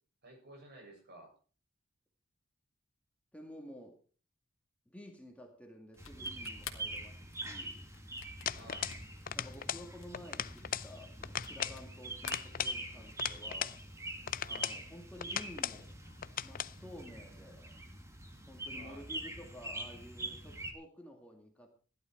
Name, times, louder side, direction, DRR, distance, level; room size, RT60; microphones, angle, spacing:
voice 1, 0.2-1.3 8.5-8.9 14.4-14.7 18.7-19.0, right 1 dB, 55° right, 2 dB, 7.3 m, -53 dB
voice 2, 3.3-4.0 4.9-7.9 9.3-13.8 14.5-15.9 16.4-17.8 18.5-21.7, left 1 dB, 5° left, 2 dB, 2.1 m, -52 dB
sound 1, 5.9-11.9 12.2-13.2, left 9 dB, 75° left, 1.9 m, -50 dB
sound 2, 6.0-20.7, right 1 dB, 15° right, 2.2 m, -44 dB
sound 3, 8.5-9.0 9.3-9.9 10.1-10.9 11.2-11.8 12.2-13.8 14.3-14.8 15.2-15.8 16.2-16.7, left 9 dB, 45° left, 0.5 m, -38 dB
16.0 x 11.5 x 4.6 m, 0.39 s
head